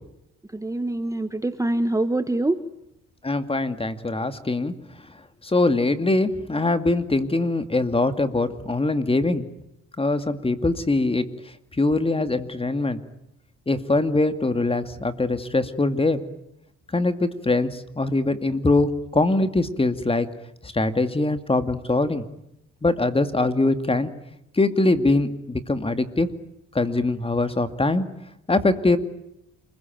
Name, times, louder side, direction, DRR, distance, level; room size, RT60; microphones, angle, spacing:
voice 1, 0.5-2.6, right 2 dB, 10° right, 10 dB, 1.3 m, -24 dB
voice 2, 3.2-4.7 5.4-9.5 10.0-11.3 11.8-13.0 13.7-16.2 16.9-20.3 20.6-22.2 22.8-24.1 24.6-26.3 26.7-28.0 28.5-29.0, left 2 dB, 20° left, 10 dB, 2.4 m, -22 dB
29.0 x 21.5 x 9.3 m, 0.82 s
cardioid pair, 90°, 30 cm